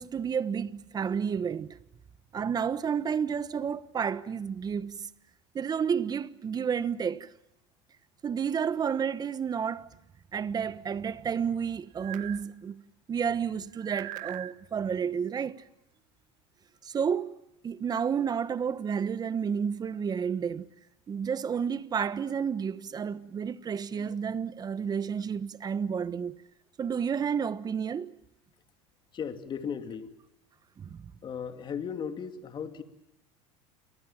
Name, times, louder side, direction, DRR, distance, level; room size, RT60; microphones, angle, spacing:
voice 1, 0.0-1.8 2.3-5.1 5.5-7.3 8.2-9.9 10.3-12.8 13.1-15.6 16.8-17.4 17.6-20.7 21.1-26.4 26.8-28.1 30.8-31.0, right 7 dB, 25° right, 1.2 m, -31 dB
sound 1, 12.0-12.4 13.7-14.5, right 16 dB, 60° right, 1.5 m, -40 dB
voice 2, 29.1-30.1 31.2-32.8, left 7 dB, 35° left, 2.7 m, -36 dB
29.5 x 23.5 x 7.4 m
supercardioid pair, 115°, 15 cm